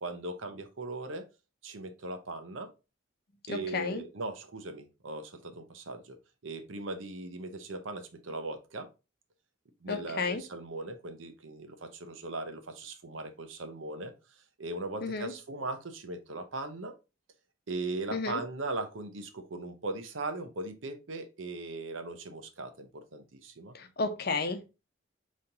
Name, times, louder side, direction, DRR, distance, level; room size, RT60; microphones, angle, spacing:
voice 1, 0.0-1.2 1.6-2.7 3.5-6.2 6.4-8.9 9.8-14.1 14.6-16.9 17.7-23.7, right 2 dB, 90° right, 0.8 m, -39 dB
voice 2, 3.5-4.0 9.9-10.4 15.0-15.3 18.1-18.4 23.7-24.7, left 4 dB, 55° left, 0.7 m, -32 dB
5.2 x 3.1 x 2.8 m
head